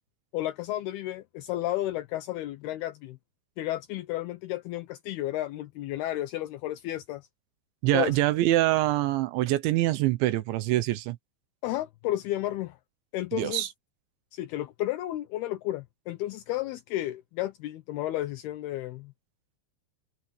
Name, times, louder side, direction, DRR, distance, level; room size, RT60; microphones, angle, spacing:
voice 1, 0.3-3.2 3.6-7.3 7.9-8.2 11.6-12.8 13.1-13.6 14.3-19.1, left 15 dB, 80° left, 2.3 m, -32 dB
voice 2, 7.8-11.2 13.3-13.7, right 16 dB, 80° right, 3.0 m, -25 dB
omnidirectional pair, 5.6 m